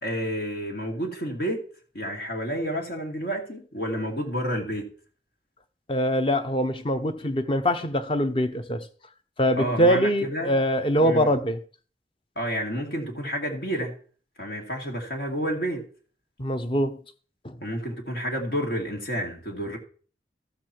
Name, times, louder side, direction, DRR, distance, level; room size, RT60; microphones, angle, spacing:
voice 1, 0.0-1.6 1.9-4.9 9.5-10.5 11.0-11.3 12.4-13.9 14.4-15.8 17.6-19.8, equal, 70° left, 2.2 m, -30 dB
voice 2, 5.9-8.8 9.4-11.6 16.4-17.0 17.4-17.6, equal, 30° left, 0.8 m, -23 dB
14.0 x 7.0 x 4.5 m
head